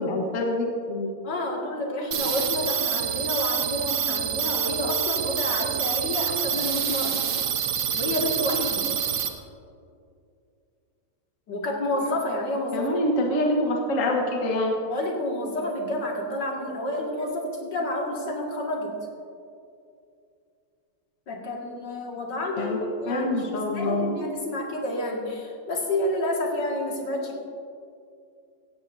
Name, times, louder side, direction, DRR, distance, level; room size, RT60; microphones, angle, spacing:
voice 1, 0.0-1.1 12.7-14.7 22.6-22.8 23.1-24.1, left 1 dB, 45° left, 0 dB, 1.6 m, -25 dB
voice 2, 1.2-7.2 7.9-8.9 11.5-13.6 14.9-19.0 21.3-27.4, left 1 dB, 70° left, -1 dB, 2.6 m, -29 dB
sound 1, 2.1-9.3, right 9 dB, 80° right, 1.6 m, -27 dB
17.5 x 15.5 x 2.7 m, 2.5 s
omnidirectional pair, 2.0 m